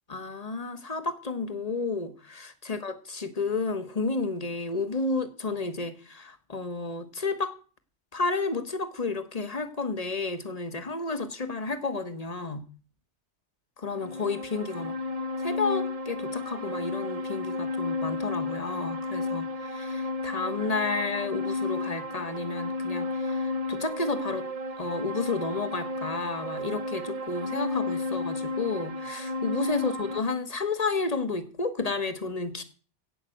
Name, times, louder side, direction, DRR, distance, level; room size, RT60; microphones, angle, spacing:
voice 1, 0.1-7.5 8.1-12.6 13.8-14.9 15.4-24.5 24.8-32.6, left 3 dB, 35° left, 10 dB, 1.3 m, -31 dB
sound 1, 13.9-30.2, left 2 dB, 35° right, 0.8 m, -33 dB
16.5 x 5.8 x 7.8 m, 0.39 s
omnidirectional pair, 1.2 m